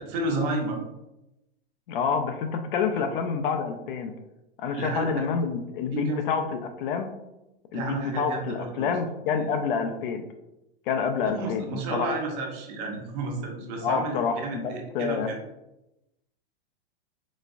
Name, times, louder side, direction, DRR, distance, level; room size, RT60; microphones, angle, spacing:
voice 1, 0.1-0.8 4.8-5.0 5.9-6.2 7.7-8.9 9.4-9.5 11.2-15.4, right 2 dB, 45° right, 0 dB, 0.8 m, -31 dB
voice 2, 1.9-4.1 4.6-7.1 7.7-10.2 10.9-12.1 13.6-15.3, left 6 dB, 55° left, 6 dB, 0.5 m, -28 dB
4.0 x 2.2 x 2.4 m, 0.92 s
hypercardioid pair, 120°, 31 cm